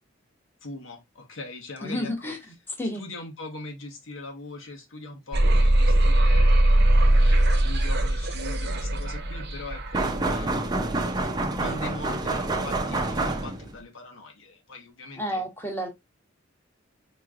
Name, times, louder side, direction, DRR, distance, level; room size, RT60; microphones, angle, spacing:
voice 1, 0.6-2.3 2.9-11.0 11.6-15.4, left 2 dB, 85° left, 1.3 m, -41 dB
voice 2, 1.8-2.4 2.8-3.1 15.2-15.9, equal, 10° left, 1.0 m, -30 dB
sound 1, 5.3-10.4, right 1 dB, 55° right, 0.8 m, -20 dB
sound 2, 9.9-13.8, right 2 dB, 20° right, 0.6 m, -27 dB
4.4 x 3.1 x 2.4 m
head